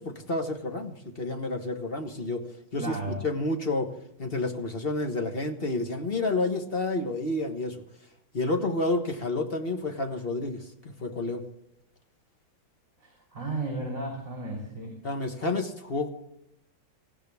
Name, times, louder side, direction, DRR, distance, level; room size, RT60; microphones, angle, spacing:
voice 1, 0.0-2.4 2.7-3.9 4.2-7.8 8.3-11.4 15.0-16.1, left 2 dB, 30° left, 5 dB, 1.4 m, -30 dB
voice 2, 2.8-3.2 13.0-14.9, right 2 dB, 35° right, 0 dB, 3.7 m, -34 dB
19.0 x 15.5 x 3.5 m, 0.77 s
omnidirectional pair, 2.2 m